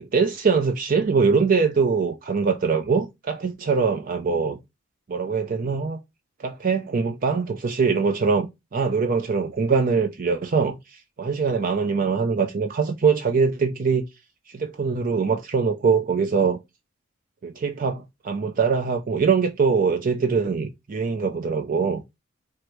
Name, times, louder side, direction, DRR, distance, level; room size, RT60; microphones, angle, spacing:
voice 1, 0.0-4.6 5.1-6.0 6.4-14.0 14.5-16.6 17.4-22.0, right 5 dB, 40° right, 0.4 m, -23 dB
4.7 x 2.0 x 4.4 m
head